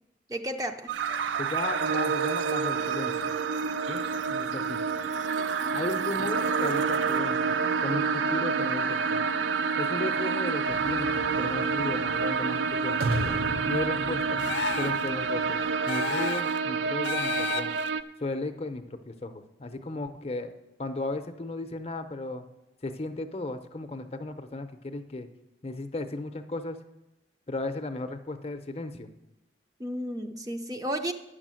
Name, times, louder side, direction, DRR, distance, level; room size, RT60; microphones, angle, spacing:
voice 1, 0.3-0.9 29.8-31.1, equal, 20° right, 6 dB, 0.5 m, -32 dB
sound 1, 0.9-18.0, right 5 dB, 85° right, 0.4 m, -28 dB
voice 2, 1.4-3.3 3.9-4.8 5.7-9.2 9.8-13.0 13.7-14.4 14.8-15.6 15.9-17.7 18.2-20.5 20.8-22.4 22.8-25.3 25.6-26.8 27.5-29.1, left 2 dB, 35° left, 8 dB, 0.6 m, -35 dB
sound 2, 10.7-15.7, right 1 dB, 55° right, 0.7 m, -36 dB
sound 3, 14.4-15.1 15.9-16.6 17.0-17.9, left 6 dB, 75° left, 0.5 m, -32 dB
9.9 x 6.4 x 7.6 m, 1.0 s
head